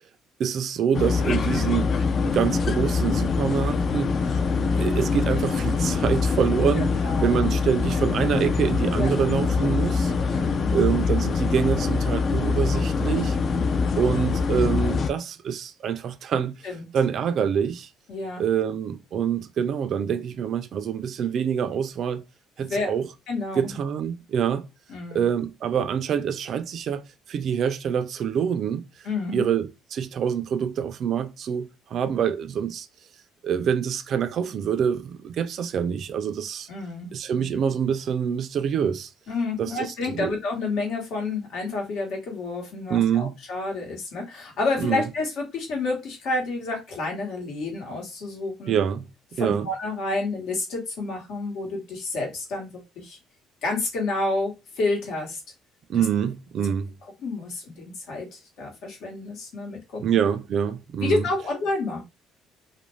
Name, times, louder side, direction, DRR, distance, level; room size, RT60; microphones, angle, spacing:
voice 1, 0.4-2.0 2.2-6.9 7.2-10.1 10.7-13.4 14.0-16.6 16.9-17.9 18.4-22.2 22.6-23.1 23.6-24.7 25.1-27.0 27.3-28.9 29.3-32.9 33.4-36.7 37.1-39.1 39.6-40.3 42.9-43.4 44.8-45.0 48.7-49.1 49.4-49.7 55.9-56.9 60.0-61.2, right 8 dB, 55° right, 0.3 m, -26 dB
sound 1, 0.9-15.1, left 5 dB, 40° left, 0.3 m, -24 dB
voice 2, 7.0-7.4 8.9-9.1 10.3-10.7 13.1-14.1 16.6-16.9 18.1-18.4 22.6-22.9 23.3-23.7 24.9-25.2 29.0-29.4 36.7-37.5 39.3-48.7 49.4-53.2 53.6-55.4 57.2-60.0 61.0-62.0, left 3 dB, 70° left, 1.1 m, -29 dB
2.4 x 2.1 x 3.0 m
cardioid pair, 115°, 0 cm